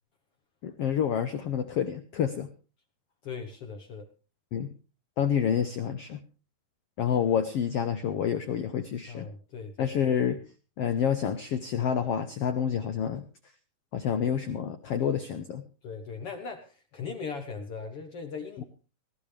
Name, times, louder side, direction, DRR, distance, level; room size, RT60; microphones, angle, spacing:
voice 1, 0.6-2.5 4.5-4.7 5.2-6.2 7.0-9.3 9.8-10.4 10.8-13.2 13.9-15.6 18.6-18.7, left 8 dB, 85° left, 9 dB, 1.3 m, -28 dB
voice 2, 3.2-4.1 4.6-4.7 9.1-9.9 15.8-18.6, left 5 dB, 60° left, 6 dB, 1.6 m, -39 dB
19.5 x 15.0 x 3.3 m, 0.35 s
omnidirectional pair, 4.0 m